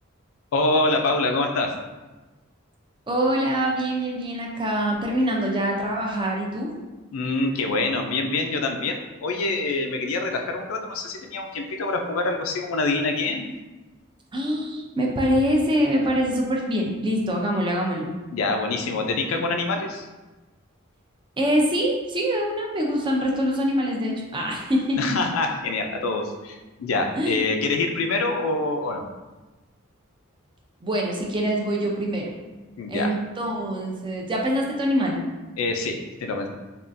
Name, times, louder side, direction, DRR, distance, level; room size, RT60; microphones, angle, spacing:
voice 1, 0.5-1.7 7.1-13.5 18.3-20.1 25.0-29.1 32.8-33.1 35.6-36.5, left 3 dB, 90° left, 4 dB, 0.4 m, -25 dB
voice 2, 3.1-6.7 14.3-18.1 21.4-25.0 27.2-27.4 30.8-32.4 32.9-35.2, equal, 25° right, -1 dB, 0.4 m, -24 dB
3.5 x 2.3 x 2.5 m, 1.2 s
head